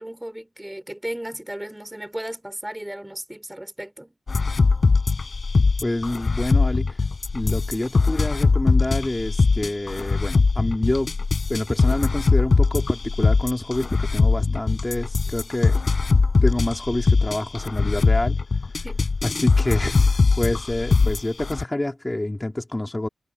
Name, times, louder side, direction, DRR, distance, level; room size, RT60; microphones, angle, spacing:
voice 1, 0.0-4.2 18.8-19.1, right 1 dB, 10° right, 3.9 m, -35 dB
sound 1, 4.3-21.6, left 4 dB, 50° left, 4.3 m, -21 dB
voice 2, 5.8-7.0 7.3-11.1 11.5-15.8 16.4-18.4 19.2-23.1, left 1 dB, 20° left, 2.6 m, -27 dB
cardioid pair, 70°, 0 cm